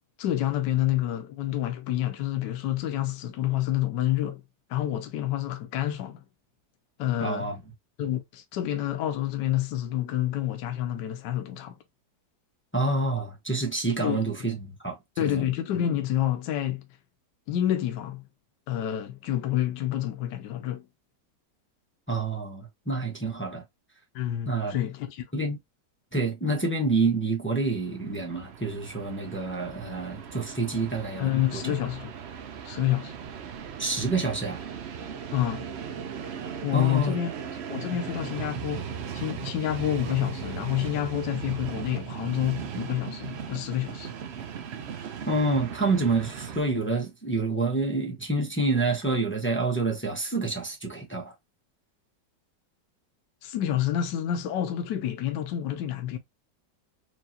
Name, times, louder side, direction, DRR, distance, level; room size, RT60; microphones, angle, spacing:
voice 1, 0.2-4.4 4.7-6.2 7.0-7.5 8.0-11.8 14.0-14.3 15.2-16.9 17.5-18.3 18.7-20.9 24.1-25.2 31.2-32.1 32.6-33.1 35.3-35.7 36.6-37.3 37.7-38.9 39.1-44.1 53.4-56.2, left 12 dB, 75° left, 1.3 m, -28 dB
voice 2, 7.2-7.6 12.7-15.5 22.1-23.6 24.5-24.8 25.3-25.6 26.1-31.7 33.8-34.6 36.7-37.2 45.3-51.3, right 3 dB, 10° left, 0.7 m, -28 dB
Train, 27.6-46.6, right 7 dB, 80° right, 0.5 m, -38 dB
4.6 x 2.8 x 2.8 m
omnidirectional pair, 1.9 m